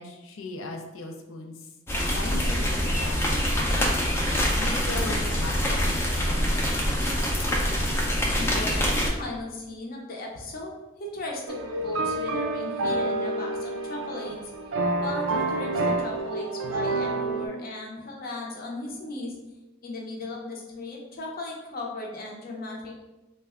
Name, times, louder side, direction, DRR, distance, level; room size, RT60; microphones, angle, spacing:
voice 1, 0.0-4.0 4.6-6.0 6.2-7.5, left 2 dB, 85° left, 3 dB, 0.5 m, -38 dB
sound 1, 1.9-9.1, equal, 10° left, 0.4 m, -25 dB
voice 2, 8.3-10.8 11.1-14.4 15.0-19.3 19.8-23.0, left 2 dB, 45° left, -1 dB, 0.7 m, -36 dB
sound 2, 11.5-17.5, right 2 dB, 80° right, 0.4 m, -28 dB
3.3 x 2.2 x 3.5 m, 1.0 s
head